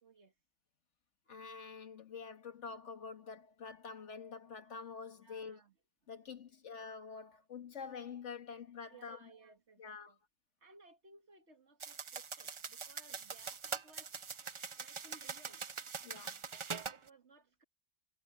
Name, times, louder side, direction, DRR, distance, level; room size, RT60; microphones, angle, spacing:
voice 1, 0.0-0.3 5.2-5.7 8.9-10.2 10.6-14.1 14.8-15.6 16.6-17.6, right 3 dB, 70° right, 2.0 m, -61 dB
voice 2, 1.3-5.6 6.1-9.3 9.8-10.1 16.0-16.4, left 5 dB, 80° left, 1.9 m, -47 dB
sound 1, 11.8-17.0, right 6 dB, 40° right, 0.5 m, -43 dB
omnidirectional pair, 1.2 m